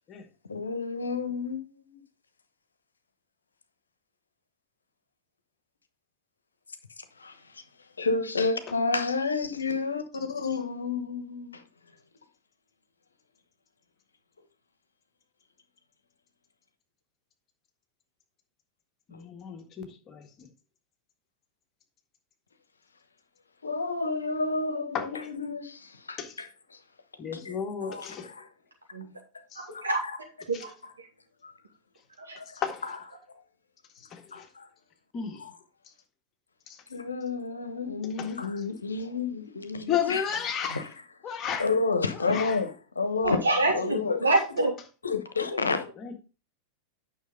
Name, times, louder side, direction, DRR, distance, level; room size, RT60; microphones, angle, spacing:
voice 1, 0.5-2.0 7.2-7.6 8.0-11.6 19.1-19.2 23.6-26.8 27.3-27.6 27.8-28.5 29.7-30.2 30.8-30.9 31.4-31.5 32.4-32.5 32.8-33.0 34.3-34.7 35.4-35.5 36.9-40.2 40.7-40.8 41.6-43.5 43.7-44.3 45.0-45.9, left 4 dB, 75° left, 1.1 m, -30 dB
voice 2, 19.1-20.5 24.9-25.3 26.2-26.4 27.2-28.3 29.5-29.7 30.5-30.7 32.6-32.8 33.9-34.5 35.1-35.4 36.7-36.8 38.1-38.4 39.9-40.9 41.2-41.7 42.3-42.6 43.2-43.3 45.4-45.7 46.0-46.2, left 8 dB, 30° left, 1.8 m, -33 dB
voice 3, 43.2-44.7, right 2 dB, 75° right, 2.9 m, -25 dB
9.4 x 6.2 x 3.8 m
figure-of-eight pair, 90°, 0 cm